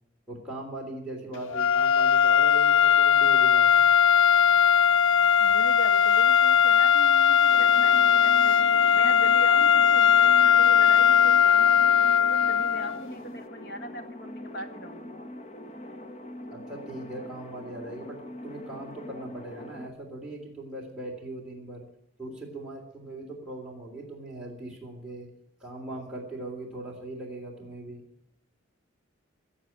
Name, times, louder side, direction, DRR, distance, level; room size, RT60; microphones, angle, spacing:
voice 1, 0.3-3.9 16.5-21.9 22.2-25.3 25.6-28.0, right 2 dB, 5° right, -3 dB, 3.2 m, -40 dB
sound 1, 1.5-13.0, left 8 dB, 80° left, 0.6 m, -19 dB
voice 2, 5.4-8.7 8.9-15.2, equal, 55° left, 7 dB, 1.8 m, -40 dB
sound 2, 7.5-19.9, left 1 dB, 35° left, 1.0 m, -42 dB
17.0 x 7.2 x 8.7 m, 0.75 s
head